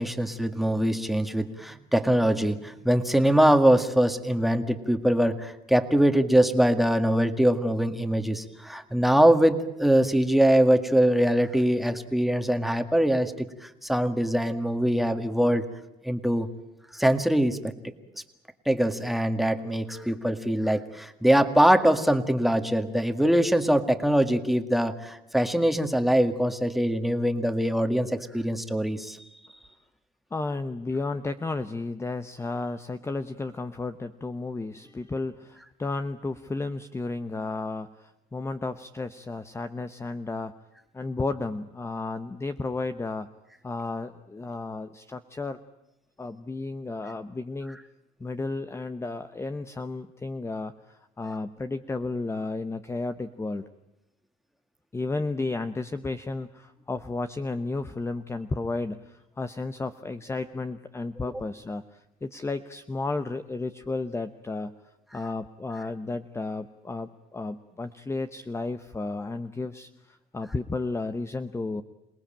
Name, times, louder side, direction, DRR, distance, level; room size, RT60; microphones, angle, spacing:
voice 1, 0.0-15.7 16.0-16.5 16.9-17.6 18.7-29.2, right 1 dB, ahead, 7 dB, 1.9 m, -23 dB
voice 2, 30.3-40.5 40.9-43.3 43.6-45.6 46.2-47.8 48.2-53.6 54.9-64.7 65.1-71.8, left 3 dB, 15° left, 10 dB, 0.9 m, -33 dB
27.5 x 19.0 x 8.9 m, 0.92 s
cardioid pair, 110°, 17 cm